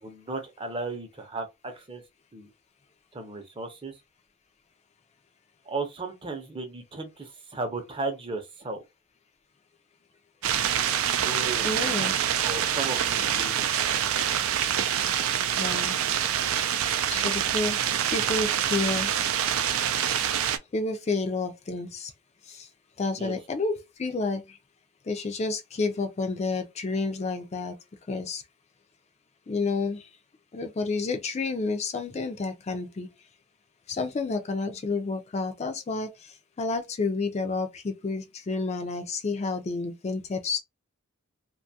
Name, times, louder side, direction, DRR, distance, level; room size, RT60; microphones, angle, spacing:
voice 1, 0.0-2.0 2.3-2.5 3.1-3.9 5.7-8.8 11.2-11.7 12.0-12.1 12.4-13.7 23.2-23.3, right 3 dB, 25° right, 0.6 m, -35 dB
sound 1, 10.4-20.6, right 9 dB, 75° right, 0.4 m, -26 dB
voice 2, 11.6-12.1 15.6-16.0 16.5-16.7 17.1-17.8 18.1-19.2 20.7-22.1 22.4-22.7 23.0-24.6 25.0-27.8 28.1-28.4 29.5-30.1 30.5-33.1 33.9-40.6, left 3 dB, 30° left, 0.3 m, -30 dB
2.5 x 2.3 x 2.7 m
head